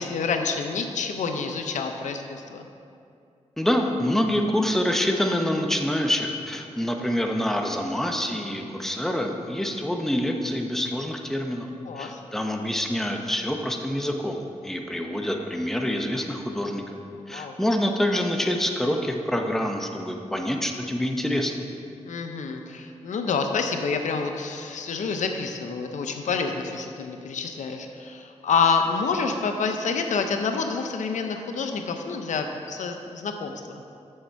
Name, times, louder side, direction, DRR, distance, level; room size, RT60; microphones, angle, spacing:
voice 1, 0.0-2.7 11.8-12.2 17.1-17.5 22.0-33.8, left 5 dB, 80° left, 5 dB, 0.6 m, -28 dB
voice 2, 3.6-11.7 12.0-14.4 14.6-16.8 17.3-21.5, left 1 dB, 5° left, 2 dB, 0.7 m, -26 dB
7.0 x 6.5 x 4.6 m, 2.5 s
cardioid pair, 80°, 12 cm